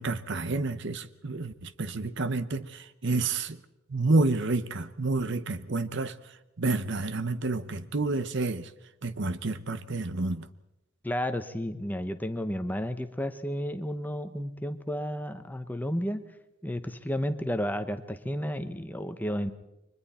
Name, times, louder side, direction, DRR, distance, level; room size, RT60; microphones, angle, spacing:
voice 1, 0.0-3.6 3.9-6.1 6.6-8.7 9.0-10.5, right 3 dB, 60° right, 0.9 m, -29 dB
voice 2, 11.0-16.2 16.6-19.5, equal, 10° left, 1.0 m, -32 dB
30.0 x 23.5 x 4.3 m
head